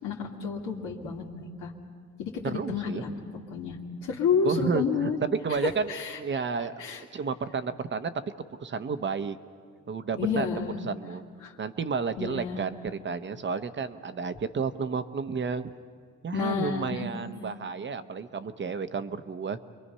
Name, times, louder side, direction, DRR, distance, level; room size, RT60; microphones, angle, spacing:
voice 1, 0.0-1.7 2.2-3.1 3.5-3.8 4.0-5.2 5.9-6.2 6.8-7.0 10.2-10.7 11.4-11.5 12.2-12.6 16.3-17.1, left 5 dB, 85° left, -1 dB, 2.5 m, -30 dB
voice 2, 2.4-3.0 4.4-8.1 8.6-9.4 9.9-10.5 10.8-11.2 11.6-15.7 16.2-19.6, right 5 dB, 40° right, 11 dB, 0.9 m, -31 dB
28.0 x 22.5 x 5.6 m, 2.1 s
cardioid pair, 90°, 30 cm